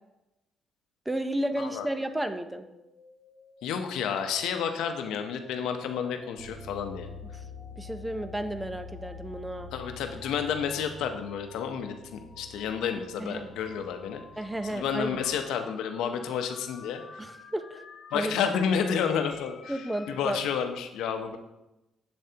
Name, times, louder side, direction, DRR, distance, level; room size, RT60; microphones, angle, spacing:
voice 1, 1.1-2.6 7.8-9.7 13.2-13.5 14.4-15.2 17.2-17.8 18.1-18.4 19.7-20.4, right 1 dB, 10° right, 9 dB, 0.6 m, -32 dB
sound 1, 1.4-20.3, left 4 dB, 55° left, 0.9 m, -53 dB
voice 2, 1.6-1.9 3.6-7.1 9.7-14.2 14.6-17.2 18.1-21.4, left 7 dB, 85° left, 7 dB, 0.7 m, -30 dB
sound 2, 6.4-15.3, left 3 dB, 80° right, 0.7 m, -46 dB
7.7 x 7.5 x 2.8 m, 0.97 s
cardioid pair, 90°, 0 cm